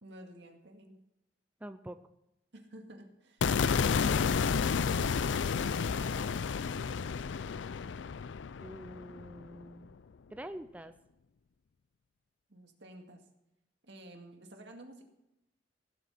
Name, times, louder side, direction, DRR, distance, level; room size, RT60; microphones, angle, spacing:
voice 1, 0.0-1.0 2.5-6.5 6.8-7.1 12.5-13.2 13.8-15.0, right 1 dB, 70° right, 3 dB, 2.1 m, -51 dB
voice 2, 1.6-2.0 8.6-10.0 10.3-10.9, right 1 dB, 10° right, 9 dB, 0.5 m, -45 dB
sound 1, 3.4-9.6, left 6 dB, 85° left, 0.4 m, -31 dB
16.0 x 8.2 x 5.8 m, 0.87 s
head